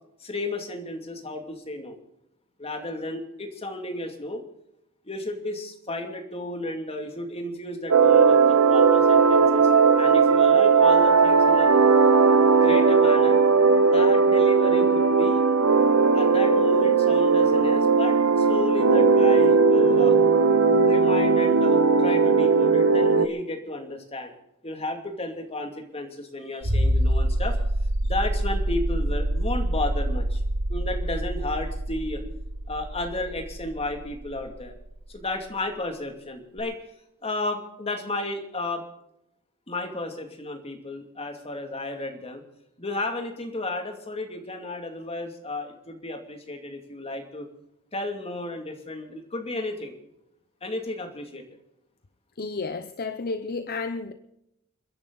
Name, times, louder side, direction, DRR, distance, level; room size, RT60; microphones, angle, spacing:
voice 1, 0.2-2.0 2.6-4.4 5.0-9.7 10.0-11.7 12.6-13.4 13.9-15.4 16.1-20.2 20.8-24.3 24.6-27.6 28.0-30.4 30.7-32.2 32.7-34.7 35.1-36.8 37.2-38.8 39.7-42.4 42.8-47.5 47.9-49.9 50.6-51.4, left 2 dB, 30° left, 2.5 m, -33 dB
sound 1, 7.9-23.3, right 5 dB, 90° right, 1.2 m, -18 dB
sound 2, 26.6-35.1 36.6-36.7, right 1 dB, 55° right, 1.7 m, -26 dB
voice 2, 52.4-54.1, left 3 dB, 45° left, 0.8 m, -31 dB
29.5 x 11.0 x 4.0 m
head